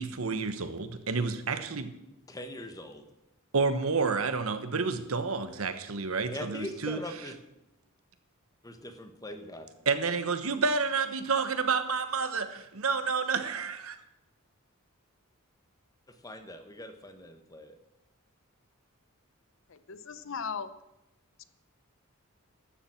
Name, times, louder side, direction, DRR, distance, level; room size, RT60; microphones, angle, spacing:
voice 1, 0.0-1.9 3.5-7.0 9.9-14.0, right 4 dB, 75° right, 10 dB, 1.1 m, -29 dB
voice 2, 2.3-3.0 6.3-7.4 8.6-9.7 16.2-17.8, left 1 dB, 15° left, 7 dB, 1.2 m, -41 dB
voice 3, 19.7-20.7 21.4-21.5, left 6 dB, 60° left, 13 dB, 0.7 m, -37 dB
12.5 x 7.3 x 7.4 m, 0.92 s
head